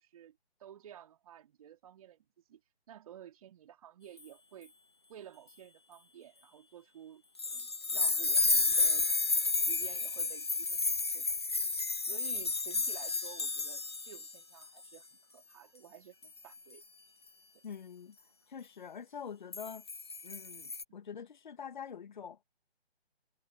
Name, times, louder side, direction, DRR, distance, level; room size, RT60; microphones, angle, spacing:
voice 1, 0.0-2.6 2.9-4.7 5.1-9.1 9.5-11.4 12.1-16.8 17.5-17.6, right 10 dB, 35° right, 3.7 m, -53 dB
sound 1, 7.4-14.3 14.6-14.9 16.2-16.5 19.5-20.8, left 3 dB, 25° left, 0.4 m, -31 dB
voice 2, 17.6-18.2 18.5-19.8 20.2-22.4, left 7 dB, 45° left, 1.5 m, -45 dB
figure-of-eight pair, 145°, 32 cm